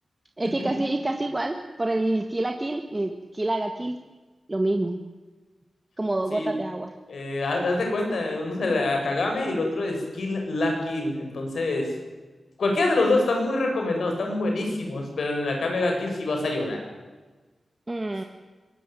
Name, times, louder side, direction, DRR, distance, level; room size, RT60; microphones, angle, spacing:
voice 1, 0.4-4.0 4.5-5.0 6.0-6.9 17.9-18.2, right 2 dB, 25° right, 5 dB, 1.8 m, -27 dB
voice 2, 7.1-11.9 12.6-16.8, left 2 dB, 80° left, 2 dB, 7.6 m, -26 dB
23.5 x 20.5 x 9.2 m, 1.3 s
wide cardioid pair, 80°, 0 cm